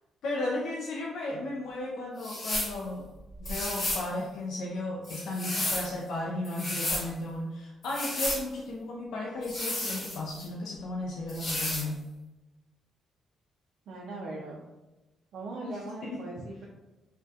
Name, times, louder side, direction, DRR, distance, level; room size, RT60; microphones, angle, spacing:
voice 1, 0.2-3.1 3.4-12.0 15.7-16.2, left 2 dB, 70° left, -3 dB, 0.3 m, -35 dB
sound 1, 2.2-2.8 3.4-4.1 5.0-5.9 6.4-7.1 7.8-8.4 9.4-10.5 11.3-11.9, left 1 dB, 40° left, 0.9 m, -32 dB
voice 2, 13.9-14.6 15.3-16.7, right 2 dB, 70° right, -3 dB, 0.3 m, -39 dB
2.2 x 2.1 x 2.5 m, 1.1 s
cardioid pair, 90°, 0 cm